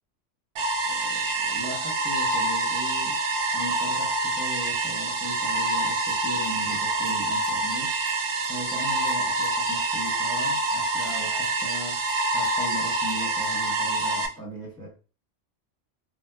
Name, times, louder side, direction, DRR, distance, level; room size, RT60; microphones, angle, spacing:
sound 1, 0.6-14.3, right 2 dB, 75° right, 0.9 m, -26 dB
voice 1, 0.8-3.2 3.5-8.2 8.5-12.1 12.3-14.9, equal, 5° left, 0.9 m, -38 dB
sound 2, 5.7-5.8 6.1-6.2 6.4-7.2 7.4-8.2 8.4-10.2 10.4-11.2 11.4-13.6, right 2 dB, 65° left, 0.8 m, -46 dB
2.8 x 2.0 x 3.4 m
omnidirectional pair, 1.3 m